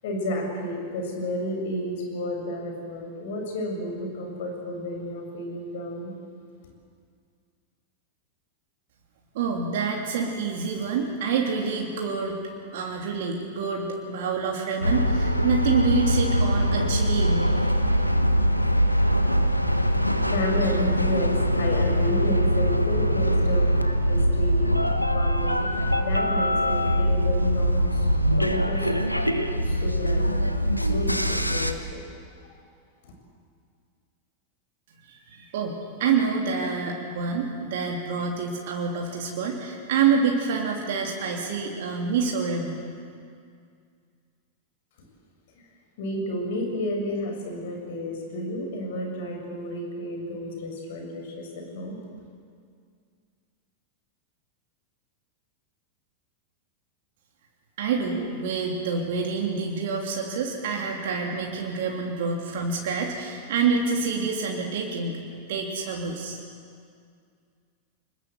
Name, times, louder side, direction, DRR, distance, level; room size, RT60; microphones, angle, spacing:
voice 1, 0.0-6.1 20.3-24.7 25.1-25.7 26.0-28.1 28.4-28.9 29.6-32.0 32.4-32.5 33.0-33.1 46.0-52.0, left 1 dB, 55° left, 2 dB, 7.1 m, -31 dB
voice 2, 9.3-12.4 12.7-17.6 35.1-42.9 57.8-66.4, right 5 dB, 55° right, 0 dB, 3.1 m, -27 dB
sound 1, 14.8-31.7, equal, 90° left, 1.3 m, -23 dB
26.0 x 20.5 x 7.8 m, 2.2 s
figure-of-eight pair, 90°, 0 cm